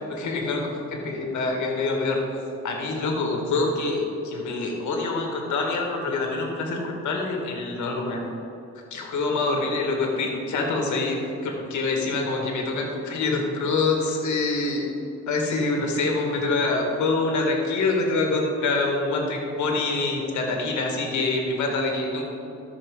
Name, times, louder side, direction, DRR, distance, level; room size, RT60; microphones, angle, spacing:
voice 1, 0.1-2.2 2.6-8.2 8.9-14.9 15.3-22.2, left 3 dB, 70° left, 1 dB, 1.9 m, -25 dB
13.5 x 6.3 x 3.8 m, 2.9 s
cardioid pair, 90°, 30 cm